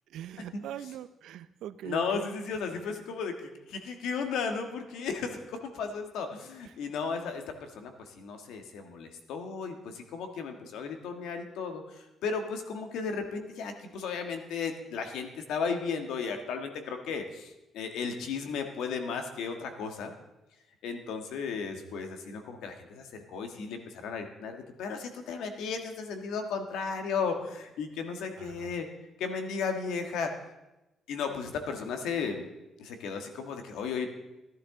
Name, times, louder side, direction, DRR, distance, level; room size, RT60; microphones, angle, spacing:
voice 1, 0.1-2.3 28.4-28.7, right 11 dB, 80° right, 13 dB, 0.6 m, -41 dB
voice 2, 1.8-3.3 3.7-7.9 8.2-20.1 20.8-28.9 29.2-30.3 31.1-32.5 32.8-34.1, left 5 dB, 85° left, 5 dB, 1.5 m, -35 dB
15.5 x 11.0 x 3.8 m, 0.98 s
cardioid pair, 110°, 0 cm